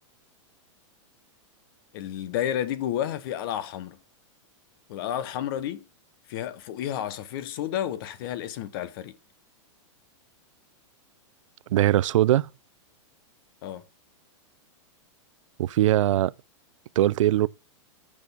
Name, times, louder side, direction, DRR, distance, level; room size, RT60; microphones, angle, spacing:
voice 1, 1.9-4.0 4.9-5.8 6.3-9.1 13.6-13.8, left 11 dB, 45° left, 0.9 m, -31 dB
voice 2, 11.7-12.5 15.6-16.3 17.0-17.5, right 13 dB, 80° right, 0.4 m, -21 dB
7.0 x 6.1 x 5.3 m
supercardioid pair, 160°, 16 cm